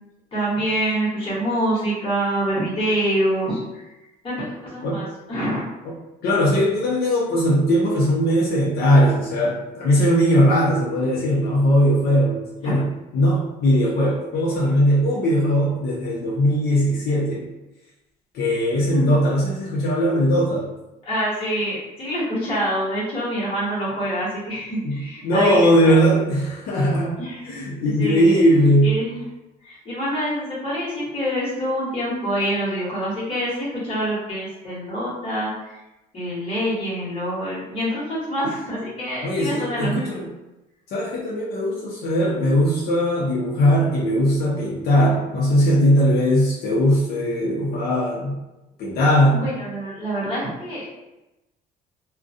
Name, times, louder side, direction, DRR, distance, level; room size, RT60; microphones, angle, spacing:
voice 1, 0.3-3.8 4.2-5.7 12.6-12.7 18.9-19.1 21.0-26.0 27.2-27.5 28.0-28.4 28.8-29.2 29.6-35.8 36.1-40.3 49.3-50.9, equal, 35° left, -9 dB, 1.3 m, -26 dB
voice 2, 6.2-17.4 18.3-20.7 24.8-27.2 27.4-29.0 39.2-40.3 40.9-48.3 48.8-49.4, equal, 70° left, -5 dB, 0.7 m, -19 dB
2.3 x 2.2 x 2.6 m, 0.97 s
cardioid pair, 110°, 17 cm